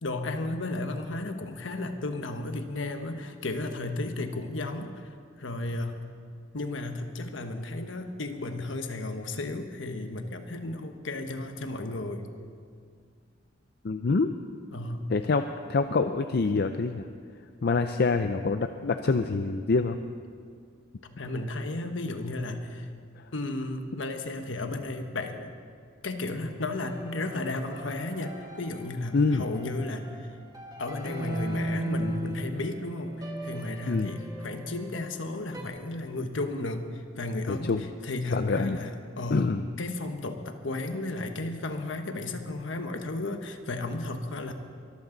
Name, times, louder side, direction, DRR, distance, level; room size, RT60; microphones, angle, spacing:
voice 1, 0.0-6.0 6.5-12.3 14.7-15.0 21.0-22.9 23.3-25.5 26.0-30.3 30.8-39.5 39.8-44.5, left 2 dB, 70° left, 6 dB, 1.3 m, -34 dB
voice 2, 13.8-14.3 15.1-17.0 17.6-20.0 29.1-29.5 33.9-34.1 37.5-37.8 38.3-38.8 39.3-39.6, left 4 dB, 55° left, 8 dB, 0.5 m, -26 dB
sound 1, 26.1-35.6, right 1 dB, 20° right, 1.8 m, -37 dB
23.5 x 14.0 x 4.0 m, 2.1 s
head